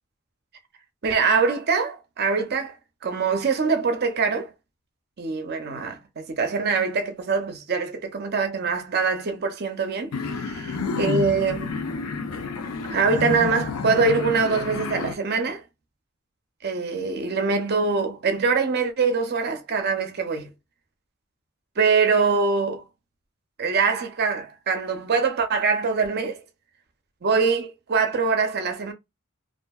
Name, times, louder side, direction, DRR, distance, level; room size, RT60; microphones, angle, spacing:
voice 1, 1.0-2.8 3.0-4.5 5.2-11.7 12.9-15.6 16.6-20.5 21.8-22.8 23.6-26.4 27.2-28.9, right 4 dB, 45° right, 0.5 m, -24 dB
sound 1, 10.1-15.2, left 4 dB, 80° left, 0.5 m, -29 dB
2.6 x 2.4 x 2.3 m
head